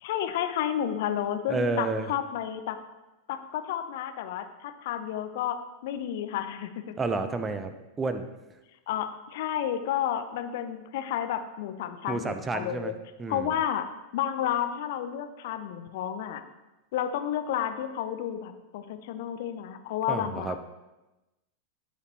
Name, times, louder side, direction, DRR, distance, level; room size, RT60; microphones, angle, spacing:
voice 1, 0.0-2.8 3.3-7.0 8.9-12.9 13.3-13.9 14.1-16.4 16.9-20.6, left 10 dB, 50° left, 8 dB, 0.8 m, -31 dB
voice 2, 1.5-2.1 7.0-8.3 12.1-12.9 13.2-13.5 20.1-20.6, right 3 dB, 15° right, 9 dB, 0.7 m, -30 dB
14.5 x 5.7 x 3.0 m, 1.0 s
figure-of-eight pair, 90°, 0 cm